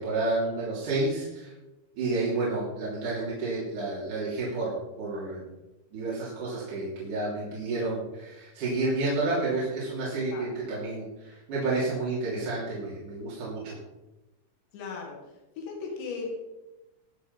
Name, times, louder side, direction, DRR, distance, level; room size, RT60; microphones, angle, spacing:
voice 1, 0.0-1.5 2.0-5.4 5.9-13.8, right 2 dB, 50° right, -8 dB, 4.5 m, -30 dB
voice 2, 14.7-15.2 15.6-16.3, left 5 dB, 90° left, 0 dB, 4.3 m, -36 dB
20.5 x 7.1 x 5.5 m, 1.0 s
omnidirectional pair, 4.9 m